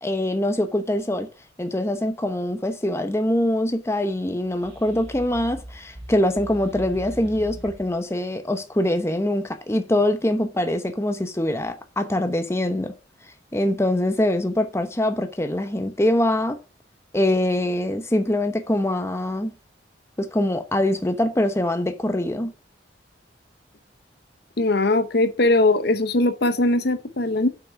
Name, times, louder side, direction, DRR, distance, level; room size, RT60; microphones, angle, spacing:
voice 1, 0.0-1.3 1.6-12.9 13.5-16.6 17.1-19.5 20.2-22.5, left 1 dB, 15° left, 0.9 m, -23 dB
sound 1, 4.4-8.0, right 1 dB, 90° right, 2.9 m, -40 dB
voice 2, 24.6-27.5, left 2 dB, 60° left, 0.9 m, -20 dB
7.1 x 6.0 x 5.9 m
head